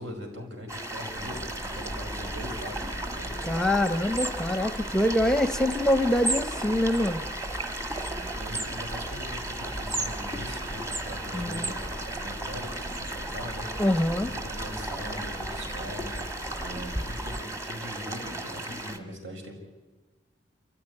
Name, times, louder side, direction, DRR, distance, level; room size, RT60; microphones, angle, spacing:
voice 1, 0.0-3.3 7.9-13.8 14.2-19.5, equal, 85° right, 2 dB, 5.6 m, -41 dB
sound 1, 0.7-19.0, right 1 dB, 15° right, 1.5 m, -35 dB
sound 2, 1.1-17.4, equal, 45° right, 4.3 m, -40 dB
voice 2, 3.5-7.2 11.3-11.7 13.8-14.3, left 1 dB, 5° left, 10 dB, 0.7 m, -25 dB
27.0 x 14.5 x 9.7 m, 1.2 s
head